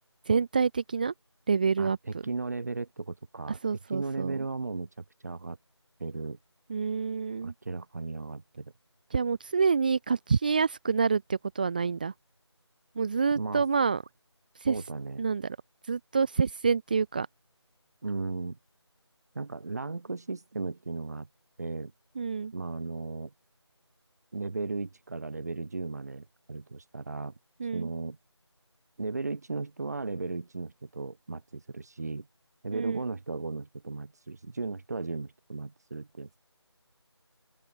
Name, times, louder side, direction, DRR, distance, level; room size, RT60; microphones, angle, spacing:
voice 1, 0.3-1.1 1.5-2.0 3.5-4.3 6.7-7.5 9.1-12.1 12.9-14.0 14.6-14.7 15.2-15.6 15.9-17.3 22.2-22.5 27.6-27.9 32.7-33.0, right 5 dB, 20° right, 1.6 m, -27 dB
voice 2, 1.8-5.6 6.0-6.4 7.4-8.7 13.3-13.6 14.7-15.2 18.0-18.6 19.3-21.3 21.6-21.9 22.5-23.3 24.3-27.3 27.7-28.2 29.0-32.3 32.6-36.4, right 3 dB, 35° right, 4.8 m, -36 dB
open air
figure-of-eight pair, 165°, 15 cm